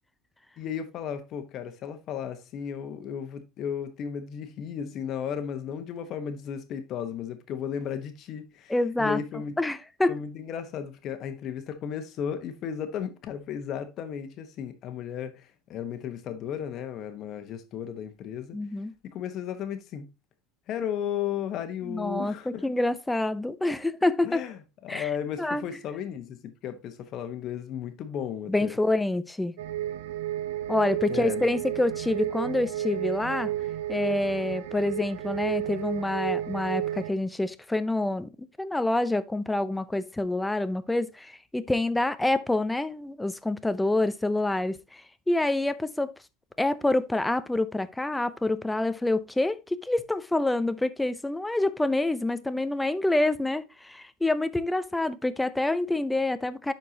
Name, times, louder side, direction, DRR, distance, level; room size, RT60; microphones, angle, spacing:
voice 1, 0.6-8.7 9.0-9.5 10.1-15.4 15.7-18.6 19.1-20.1 20.7-22.6 24.2-24.6 24.8-28.8 31.1-31.5, left 8 dB, 50° left, 1.2 m, -34 dB
voice 2, 8.7-9.2 9.6-10.2 18.5-18.9 21.8-24.4 24.9-25.1 25.4-25.6 28.5-29.6 30.7-33.5 33.9-46.1 46.6-56.7, left 2 dB, 10° left, 0.6 m, -27 dB
sound 1, 29.6-37.1, right 12 dB, 90° right, 0.5 m, -32 dB
11.0 x 4.5 x 2.8 m
supercardioid pair, 110°, 0 cm